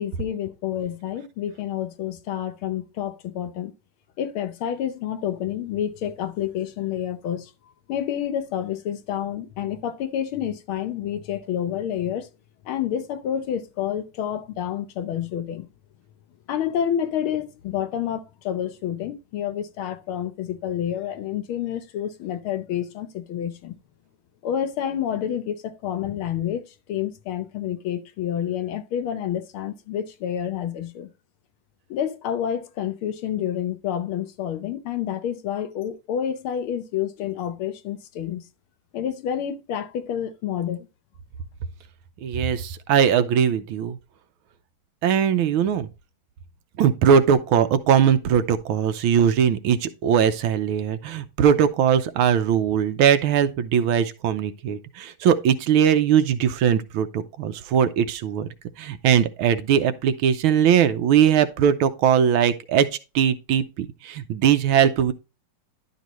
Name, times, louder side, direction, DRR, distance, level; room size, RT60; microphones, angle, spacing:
voice 1, 0.0-3.7 4.2-7.5 7.9-12.3 12.6-15.7 16.5-23.8 24.4-31.1 31.9-38.4 38.9-40.9, left 10 dB, 80° left, 1.7 m, -29 dB
voice 2, 42.2-44.0 45.0-45.9 46.8-58.5 58.8-62.9 63.1-65.1, right 8 dB, 80° right, 1.6 m, -20 dB
11.0 x 5.3 x 3.1 m
omnidirectional pair, 2.3 m